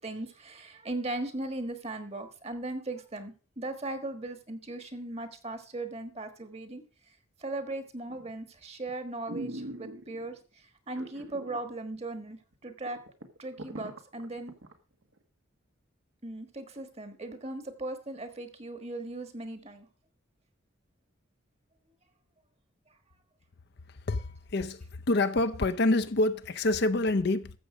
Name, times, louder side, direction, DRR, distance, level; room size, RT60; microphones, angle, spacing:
voice 1, 0.0-6.8 7.4-13.0 13.4-14.5 16.2-19.9, right 2 dB, 30° right, 1.4 m, -38 dB
sound 1, 8.1-8.4 8.9-9.0 9.3-10.3 10.9-11.6 11.9-12.0 12.5-12.6 12.9-14.7 15.2-15.3, right 1 dB, 75° right, 1.6 m, -41 dB
voice 2, 24.1-27.5, left 2 dB, 55° left, 0.6 m, -27 dB
13.5 x 7.4 x 5.0 m
head